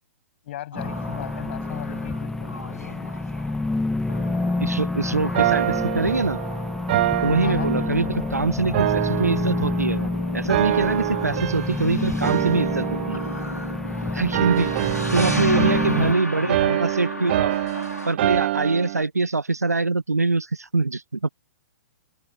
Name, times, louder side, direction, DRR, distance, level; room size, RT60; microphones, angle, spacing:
voice 1, 0.4-3.1 7.4-8.3 15.5-16.9, left 14 dB, 45° left, 7.8 m, -38 dB
sound 1, 0.7-18.1, left 1 dB, 85° left, 2.5 m, -36 dB
sound 2, 0.8-16.1, left 2 dB, 5° left, 1.5 m, -28 dB
voice 2, 4.6-6.4 7.2-8.1 8.3-13.2 14.1-14.7 15.1-17.6 18.1-21.3, right 3 dB, 80° right, 0.9 m, -24 dB
sound 3, 5.3-8.3 8.7-10.1 10.5-11.9 12.2-13.9 14.3-19.0, right 15 dB, 40° right, 0.4 m, -26 dB
open air
figure-of-eight pair, 115°, 8 cm